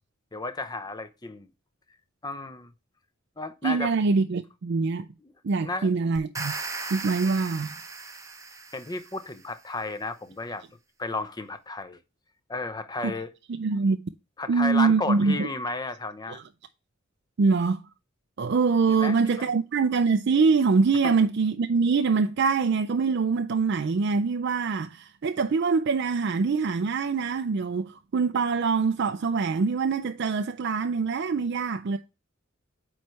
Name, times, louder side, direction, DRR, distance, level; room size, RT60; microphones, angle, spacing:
voice 1, 0.3-1.5 2.2-2.7 3.4-3.9 5.2-5.3 5.6-5.9 8.7-10.6 11.0-12.0 12.5-13.3 14.4-16.4 18.9-19.5 21.0-21.1, left 3 dB, 20° left, 0.7 m, -33 dB
voice 2, 3.6-5.1 5.4-6.5 6.9-7.7 13.0-13.1 13.5-14.1 14.5-15.5 16.3-16.4 17.4-17.8 18.4-32.0, right 4 dB, 55° right, 0.4 m, -24 dB
sound 1, 6.2-9.3, right 4 dB, 15° right, 0.7 m, -37 dB
8.7 x 3.2 x 4.6 m
head